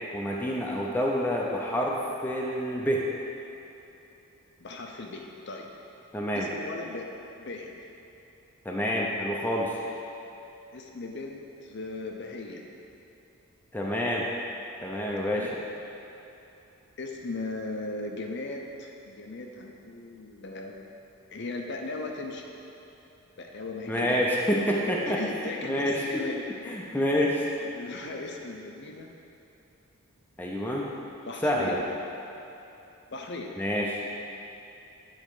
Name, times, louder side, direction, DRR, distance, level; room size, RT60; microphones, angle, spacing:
voice 1, 0.1-3.0 6.1-6.5 8.6-9.7 13.7-14.2 14.8-15.5 23.9-25.2 25.6-26.0 26.6-27.5 30.4-30.9 31.4-31.8 33.6-34.0, equal, 10° left, -3 dB, 0.5 m, -27 dB
voice 2, 4.6-5.7 6.3-7.1 7.4-7.7 10.7-12.6 15.2-15.5 17.0-20.8 21.3-22.5 23.4-24.2 25.1-26.4 26.9-27.0 27.6-29.1 30.8-31.8 33.1-33.5, left 3 dB, 50° left, 1 dB, 0.6 m, -38 dB
8.8 x 4.3 x 4.8 m, 2.9 s
head